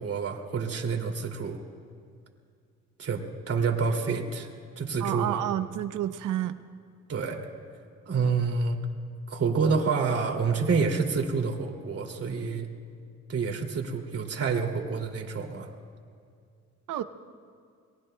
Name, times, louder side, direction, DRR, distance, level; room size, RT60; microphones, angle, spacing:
voice 1, 0.0-1.6 3.0-4.5 4.8-5.4 7.1-7.4 8.1-8.8 9.3-12.7 13.3-15.7, right 5 dB, 50° right, 2 dB, 2.5 m, -28 dB
voice 2, 5.0-6.6 16.9-17.0, right 12 dB, 85° right, 11 dB, 0.7 m, -29 dB
29.0 x 22.5 x 2.2 m, 2.2 s
cardioid pair, 90°, 30 cm